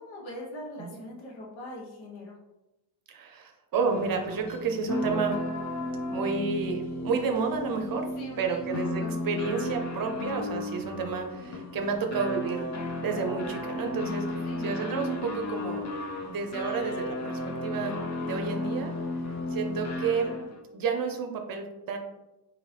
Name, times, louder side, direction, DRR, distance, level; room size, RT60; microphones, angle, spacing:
voice 1, 0.0-2.4 8.2-9.2 14.4-14.7, left 1 dB, 85° left, -2 dB, 1.2 m, -41 dB
voice 2, 3.1-5.4 6.1-8.1 8.4-15.8 16.3-18.9 19.5-20.3 20.7-22.0, right 5 dB, 50° right, 4 dB, 0.6 m, -31 dB
sound 1, 3.9-20.6, left 1 dB, 40° left, 0.5 m, -34 dB
sound 2, 9.9-11.9 12.4-18.2, left 1 dB, 55° left, 1.2 m, -55 dB
4.1 x 2.8 x 3.3 m, 0.98 s
wide cardioid pair, 165°, 46 cm